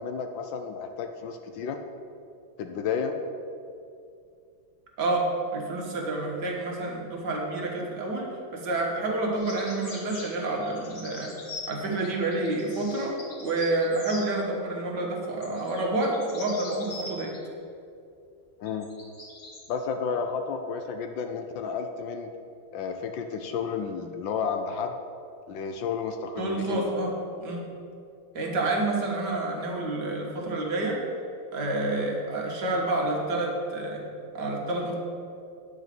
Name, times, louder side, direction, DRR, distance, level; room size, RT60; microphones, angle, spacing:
voice 1, 0.0-1.8 2.6-3.2 18.6-18.9 19.7-22.3 22.7-25.0 25.5-26.8, left 6 dB, 70° left, 6 dB, 1.3 m, -32 dB
voice 2, 5.0-11.3 11.7-17.3 26.4-27.1 27.4-27.7 28.3-31.0 31.5-34.1 34.3-34.9, right 2 dB, 55° right, -1 dB, 1.9 m, -29 dB
sound 1, 9.3-14.3 15.4-17.4 18.7-19.6, left 3 dB, 45° left, 2.3 m, -42 dB
9.5 x 5.0 x 7.6 m, 2.5 s
omnidirectional pair, 2.3 m